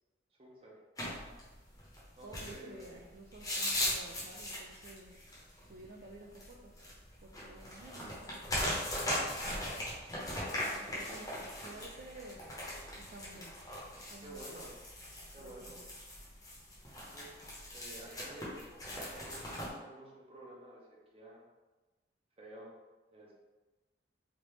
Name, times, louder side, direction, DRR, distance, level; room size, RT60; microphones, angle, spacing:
voice 1, 0.4-0.8 2.2-2.9 9.4-9.9 10.8-11.3 11.8-12.0 14.2-14.7 15.3-15.8 17.1-17.3 17.7-21.4 22.4-22.7 23.1-23.3, right 1 dB, 30° right, -4 dB, 0.7 m, -51 dB
sound 1, 1.0-19.7, left 1 dB, 20° left, 0.8 m, -39 dB
voice 2, 2.2-5.2 5.7-6.7 7.2-8.4 10.7-12.4 13.0-13.5 14.1-14.7 15.4-15.8, right 2 dB, 50° right, -4 dB, 0.4 m, -52 dB
3.4 x 2.5 x 3.1 m, 1.2 s
head